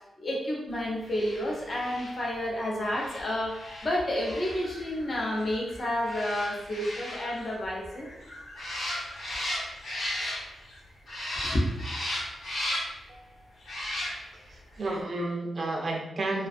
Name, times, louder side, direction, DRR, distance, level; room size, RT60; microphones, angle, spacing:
voice 1, 0.0-8.1 11.4-11.7, left 1 dB, 35° left, -2 dB, 0.6 m, -30 dB
sound 1, 1.0-10.8 11.1-13.1 13.6-14.5 14.8-14.9, left 1 dB, 60° left, 0.9 m, -36 dB
voice 2, 14.3-16.5, right 2 dB, 45° right, 1 dB, 0.4 m, -32 dB
2.3 x 2.3 x 2.4 m, 0.95 s
wide cardioid pair, 130°, 0 cm